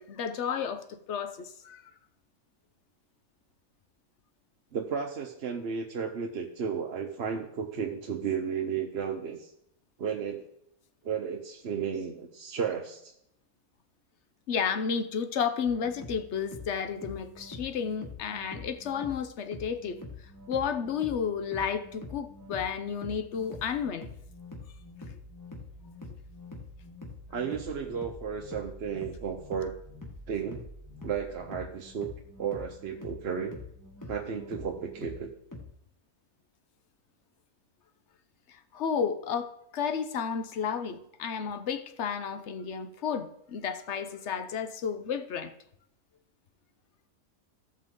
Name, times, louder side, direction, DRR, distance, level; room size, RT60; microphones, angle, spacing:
voice 1, 0.0-1.8 14.5-20.0 20.5-24.1 38.7-45.5, left 7 dB, 55° left, 0.9 m, -32 dB
voice 2, 4.7-9.5 10.0-10.4 11.0-13.1 27.3-29.7 30.3-30.6 31.0-32.1 32.4-33.6 34.1-35.3, right 7 dB, 50° right, 0.9 m, -33 dB
sound 1, 15.6-35.6, left 3 dB, 10° left, 1.4 m, -45 dB
15.0 x 5.7 x 3.8 m
omnidirectional pair, 1.7 m